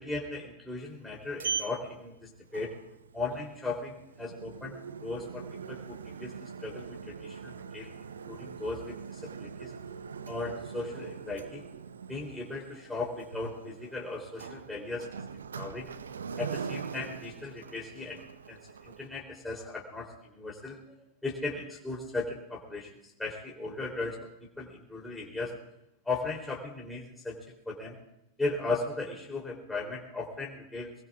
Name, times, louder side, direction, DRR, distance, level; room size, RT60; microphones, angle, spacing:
voice 1, 0.0-2.7 3.1-7.9 8.3-9.7 10.3-11.6 12.1-15.1 15.5-15.9 16.4-18.2 18.5-18.6 18.8-20.9 21.2-22.9 23.2-24.3 24.6-25.5 26.0-27.4 27.6-27.9 28.4-30.9, left 3 dB, 5° left, -3 dB, 3.4 m, -37 dB
Sliding door, 0.8-19.1, right 6 dB, 75° right, 0.8 m, -42 dB
24.5 x 21.5 x 2.5 m, 0.86 s
figure-of-eight pair, 90°, 0 cm